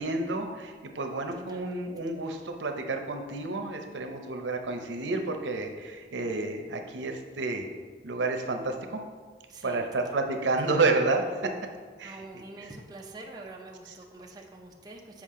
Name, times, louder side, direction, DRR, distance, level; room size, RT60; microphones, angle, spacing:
voice 1, 0.0-7.7 8.0-9.0 9.6-11.5 12.0-12.2, right 3 dB, 85° right, 4 dB, 0.7 m, -30 dB
voice 2, 1.5-1.9 9.5-10.5 12.0-15.2, right 2 dB, 20° right, 0 dB, 0.5 m, -46 dB
7.3 x 4.9 x 3.7 m, 1.5 s
head